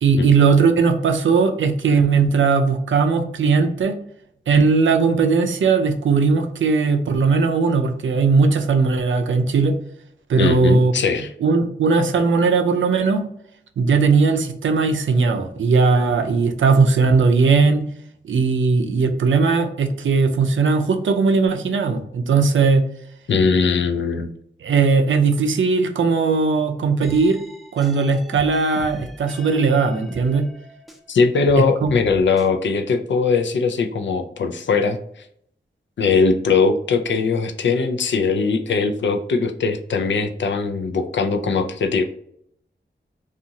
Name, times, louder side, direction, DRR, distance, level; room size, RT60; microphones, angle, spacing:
voice 1, 0.0-3.9 4.5-9.8 10.3-10.9 11.4-13.2 13.8-17.8 18.2-22.8 24.6-27.4 27.7-30.5 31.6-31.9, right 4 dB, 90° right, 6 dB, 0.4 m, -18 dB
voice 2, 10.4-11.3 23.3-24.3 31.1-35.0 36.0-42.0, left 4 dB, 75° left, 6 dB, 0.4 m, -20 dB
sound 1, 27.0-31.1 31.4-32.5, equal, ahead, 0.5 m, -39 dB
2.6 x 2.4 x 2.7 m, 0.70 s
cardioid pair, 50°, 19 cm